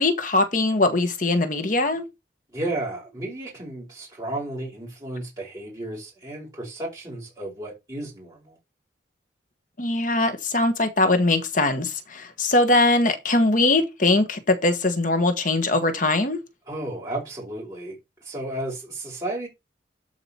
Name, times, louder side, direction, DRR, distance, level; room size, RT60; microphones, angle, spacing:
voice 1, 0.0-2.0 9.8-16.4, left 2 dB, 45° left, 1.5 m, -21 dB
voice 2, 2.5-8.6 16.7-18.0 18.2-19.5, right 1 dB, 20° right, 4.8 m, -33 dB
13.0 x 5.0 x 4.3 m
head